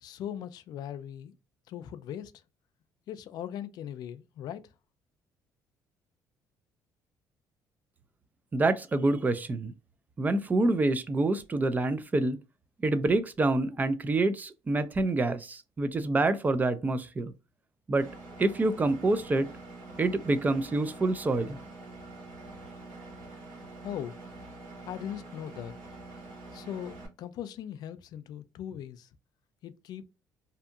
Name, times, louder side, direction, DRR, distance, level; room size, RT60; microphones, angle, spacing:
voice 1, 0.0-1.3 1.7-2.3 3.1-4.7 23.8-24.1 24.8-25.7 26.5-29.1 29.6-30.1, left 10 dB, 65° left, 0.3 m, -39 dB
voice 2, 8.5-9.7 10.2-12.4 12.8-17.3 17.9-18.1 18.4-19.5 20.0-21.6, right 2 dB, 25° right, 0.4 m, -27 dB
Engine, 18.0-27.1, right 2 dB, 90° right, 1.4 m, -46 dB
2.7 x 2.5 x 2.3 m
cardioid pair, 100°, 7 cm